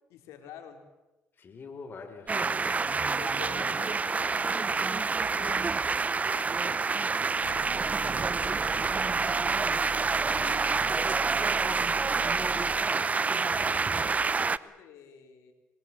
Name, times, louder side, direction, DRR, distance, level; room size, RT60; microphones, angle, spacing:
voice 1, 0.1-0.9 3.1-6.8 7.1-8.9 10.9-15.5, left 8 dB, 85° left, 5 dB, 3.8 m, -49 dB
voice 2, 1.4-3.1 10.1-10.9, left 4 dB, 45° left, 6 dB, 3.5 m, -45 dB
sound 1, 2.3-14.6, right 4 dB, 30° right, 0.8 m, -27 dB
sound 2, 7.4-12.8, right 6 dB, 90° right, 2.4 m, -44 dB
26.5 x 22.0 x 7.1 m, 1.0 s
cardioid pair, 80°, 5 cm